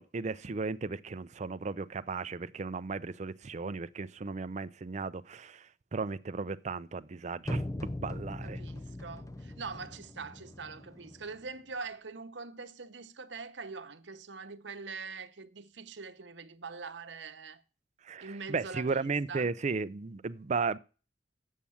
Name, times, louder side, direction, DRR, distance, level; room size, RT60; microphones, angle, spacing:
voice 1, 0.0-8.6 18.0-20.8, right 4 dB, 40° right, 0.5 m, -35 dB
sound 1, 7.4-11.5, left 1 dB, 20° left, 0.4 m, -41 dB
voice 2, 8.4-17.6 18.2-19.6, right 4 dB, 80° right, 0.9 m, -43 dB
8.5 x 7.4 x 7.0 m
head